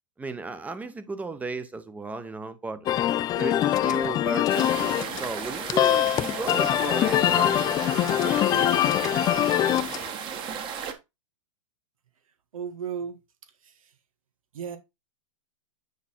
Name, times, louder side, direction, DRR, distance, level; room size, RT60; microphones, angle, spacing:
voice 1, 0.2-2.9 3.4-4.7 5.2-7.6 8.2-8.7, right 3 dB, 10° right, 0.9 m, -35 dB
sound 1, 2.9-10.1, left 12 dB, 20° left, 0.5 m, -23 dB
sound 2, 4.5-10.9, right 7 dB, 30° right, 1.5 m, -34 dB
voice 2, 12.2-13.2 13.5-14.0 14.5-14.8, right 7 dB, 85° right, 1.5 m, -36 dB
9.4 x 4.0 x 4.4 m
hypercardioid pair, 135°, 17 cm